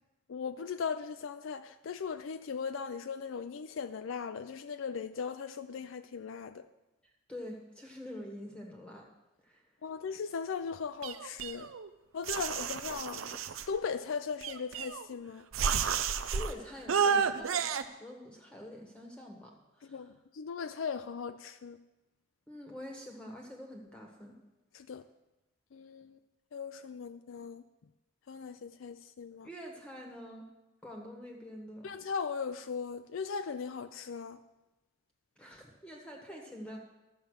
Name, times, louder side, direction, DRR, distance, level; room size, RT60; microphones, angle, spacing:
voice 1, 0.3-6.7 9.8-11.7 12.1-13.4 13.7-15.5 19.9-21.8 24.7-25.0 25.7-26.2 26.5-27.6 28.3-29.5 31.8-34.4, left 6 dB, 75° left, 0.4 m, -38 dB
voice 2, 7.3-9.1 9.4-9.7 16.0-20.1 22.5-24.4 29.4-30.5 30.8-31.9 35.4-36.8, equal, 5° left, 1.3 m, -46 dB
sound 1, 11.0-11.9 12.3-13.7 14.4-15.1 15.5-16.5 16.9-17.8, right 6 dB, 85° right, 0.6 m, -31 dB
12.5 x 6.9 x 6.4 m
head